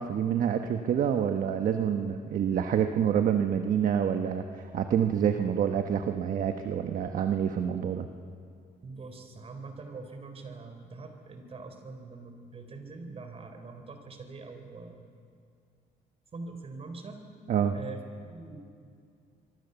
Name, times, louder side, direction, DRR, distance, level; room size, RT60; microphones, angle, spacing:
voice 1, 0.0-8.1 17.5-17.8, right 8 dB, 55° right, 7 dB, 1.2 m, -27 dB
voice 2, 8.8-15.1 16.3-17.2 17.7-18.6, right 3 dB, 35° right, 6 dB, 4.0 m, -43 dB
25.0 x 23.5 x 7.0 m, 2.3 s
cardioid pair, 110°, 17 cm